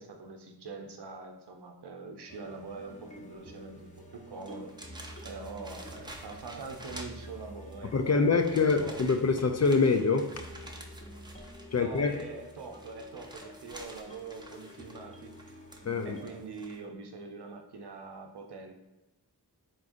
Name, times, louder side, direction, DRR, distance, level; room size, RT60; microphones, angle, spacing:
voice 1, 0.0-4.7 5.2-9.0 11.7-15.4 16.0-18.7, right 4 dB, 80° right, 4 dB, 0.6 m, -44 dB
sound 1, 2.3-16.4, equal, 20° left, 0.8 m, -49 dB
sound 2, 3.9-4.0 4.4-7.7 8.3-16.8, right 1 dB, 10° right, 0.6 m, -50 dB
voice 2, 7.9-10.3 11.7-12.2 15.9-16.2, left 4 dB, 40° left, 6 dB, 0.4 m, -25 dB
3.8 x 3.6 x 2.5 m, 1.0 s
wide cardioid pair, 45°, 40 cm